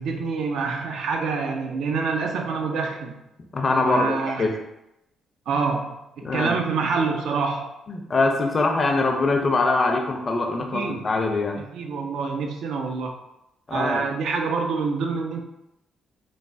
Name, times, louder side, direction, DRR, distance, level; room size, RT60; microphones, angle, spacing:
voice 1, 0.0-3.2 3.8-4.5 5.5-7.7 10.7-11.1 11.7-13.2 13.7-15.4, right 4 dB, 75° right, 3 dB, 0.4 m, -26 dB
voice 2, 3.5-4.6 6.2-6.6 7.9-11.6 13.7-14.0, left 3 dB, 35° left, 3 dB, 0.4 m, -23 dB
3.1 x 2.3 x 2.5 m, 0.88 s
cardioid pair, 90°, 0 cm